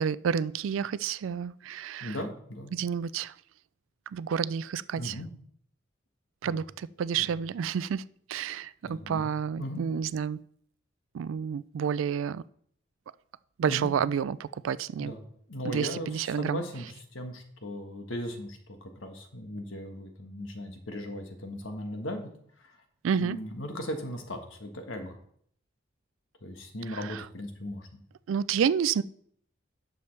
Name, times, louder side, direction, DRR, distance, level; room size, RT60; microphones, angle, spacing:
voice 1, 0.0-2.2 2.7-3.3 4.1-5.1 6.4-8.0 8.3-10.4 11.1-12.4 13.6-15.1 15.6-16.6 23.0-23.4 27.1-27.2 28.3-29.0, right 7 dB, 80° right, 18 dB, 0.3 m, -29 dB
voice 2, 2.0-2.7 5.0-5.3 6.4-6.6 7.2-7.3 8.8-9.8 13.7-13.9 15.0-22.3 22.6-22.8 23.2-25.2 26.4-28.0, left 1 dB, 80° left, 5 dB, 1.4 m, -38 dB
11.0 x 6.9 x 3.3 m, 0.64 s
head